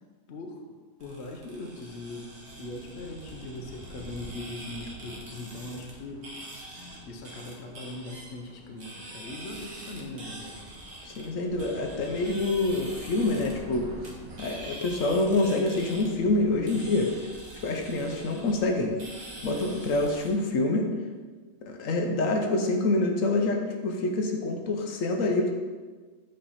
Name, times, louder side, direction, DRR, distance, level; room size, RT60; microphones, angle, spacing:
voice 1, 0.3-0.6 1.0-6.3 7.0-10.6, left 2 dB, 60° left, 3 dB, 1.0 m, -40 dB
sound 1, 1.0-20.3, right 1 dB, 55° right, 1.4 m, -44 dB
voice 2, 11.0-13.9 14.4-17.1 17.5-18.9 19.4-20.9 21.7-25.5, left 2 dB, 85° left, 2 dB, 1.1 m, -26 dB
8.5 x 3.4 x 4.1 m, 1.4 s
omnidirectional pair, 1.4 m